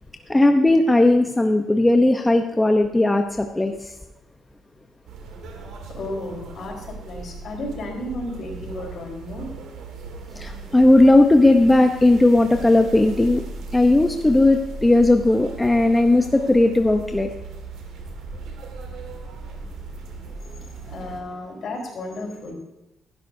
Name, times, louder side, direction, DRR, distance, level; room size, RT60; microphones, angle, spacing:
voice 1, 0.3-3.9 10.4-13.4 13.7-17.3, left 2 dB, 15° left, 5 dB, 0.8 m, -17 dB
sound 1, 5.1-21.2, right 3 dB, 85° right, 2.0 m, -38 dB
voice 2, 5.9-9.5 20.1-20.3 20.5-22.5, left 1 dB, 60° left, 0 dB, 4.4 m, -33 dB
15.0 x 12.5 x 2.7 m, 0.99 s
cardioid pair, 90°, 0 cm